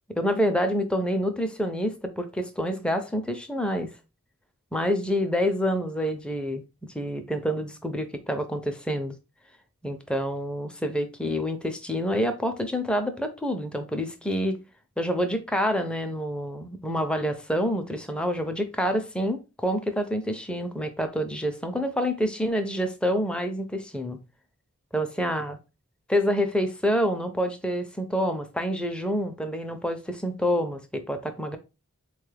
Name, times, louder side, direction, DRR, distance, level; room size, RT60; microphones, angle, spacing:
voice 1, 0.2-3.9 4.7-6.6 6.9-9.2 9.8-14.6 15.0-24.2 24.9-25.6 26.1-31.6, equal, 5° left, 0.5 m, -27 dB
4.0 x 2.3 x 3.2 m
head